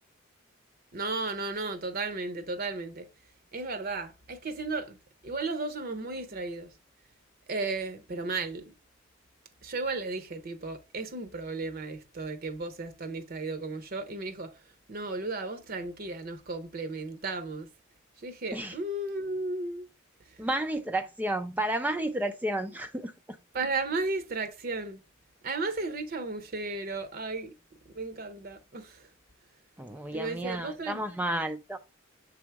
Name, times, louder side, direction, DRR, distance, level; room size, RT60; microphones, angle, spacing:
voice 1, 0.9-3.1 3.5-5.0 5.2-6.7 7.5-8.7 9.6-14.5 14.9-17.7 18.2-19.9 23.5-25.0 25.4-27.5 28.0-29.1 30.1-31.0, right 3 dB, 45° right, 0.7 m, -34 dB
voice 2, 20.4-23.1 29.8-31.8, right 1 dB, 10° right, 0.3 m, -31 dB
7.1 x 3.4 x 4.5 m
head